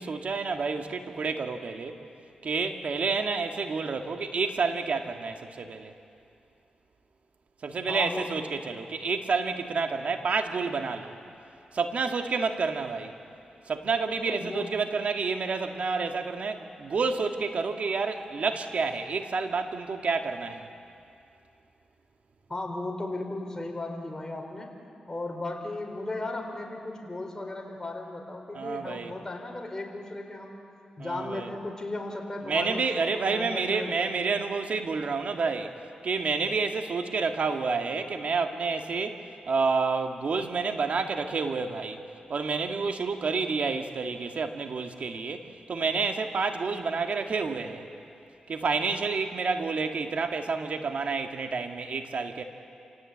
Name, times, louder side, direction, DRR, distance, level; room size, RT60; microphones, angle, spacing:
voice 1, 0.0-2.0 2.4-5.9 7.6-11.1 11.7-13.1 13.7-20.7 28.5-29.1 31.0-31.5 32.5-35.7 36.0-39.2 39.5-42.0 42.3-47.8 48.5-52.4, right 4 dB, 65° right, 5 dB, 1.8 m, -29 dB
voice 2, 7.9-8.4 14.2-14.7 22.5-24.7 25.1-30.6 31.0-34.2, left 2 dB, 20° left, 1 dB, 4.5 m, -36 dB
28.0 x 17.5 x 8.7 m, 2.7 s
cardioid pair, 60°, 3 cm